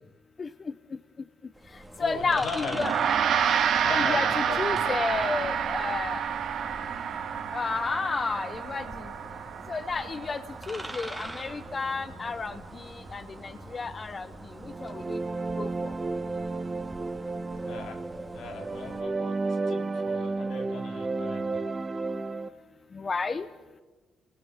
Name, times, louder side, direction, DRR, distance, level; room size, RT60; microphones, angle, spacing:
voice 1, 0.4-0.7 2.0-2.9 3.9-6.2 7.5-9.1 9.7-14.3 14.6-15.2 15.6-15.9 22.9-23.5, left 4 dB, 35° left, 12 dB, 0.9 m, -32 dB
sound 1, 1.5-19.0, right 1 dB, 5° right, 2.4 m, -44 dB
voice 2, 2.0-3.0 3.7-5.2 17.7-18.1 18.3-21.6, left 5 dB, 80° left, 4 dB, 3.4 m, -39 dB
Gong, 2.7-12.4, right 8 dB, 70° right, 2.0 m, -29 dB
sound 2, 14.6-22.5, right 3 dB, 25° right, 1.4 m, -32 dB
27.0 x 20.5 x 7.3 m, 1.3 s
cardioid pair, 90°, 0 cm